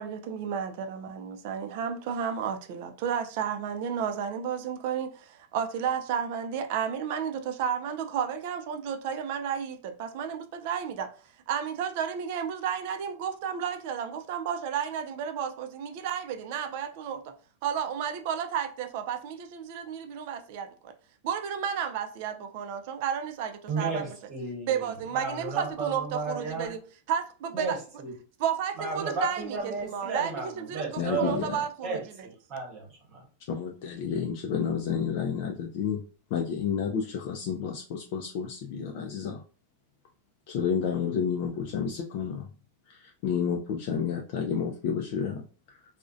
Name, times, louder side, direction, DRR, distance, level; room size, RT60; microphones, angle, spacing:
voice 1, 0.0-11.1 11.5-17.2 17.6-20.9 21.2-24.1 24.7-26.8 27.1-27.8 28.4-32.3, right 8 dB, 50° right, 0.3 m, -32 dB
voice 2, 23.7-26.7 27.5-28.1 28.8-33.2, right 4 dB, 30° right, 0.9 m, -34 dB
voice 3, 31.0-31.6 33.5-36.0 36.3-39.4 40.5-42.5 42.9-45.8, left 7 dB, 50° left, 0.3 m, -30 dB
2.4 x 2.0 x 2.5 m
supercardioid pair, 155°, 0 cm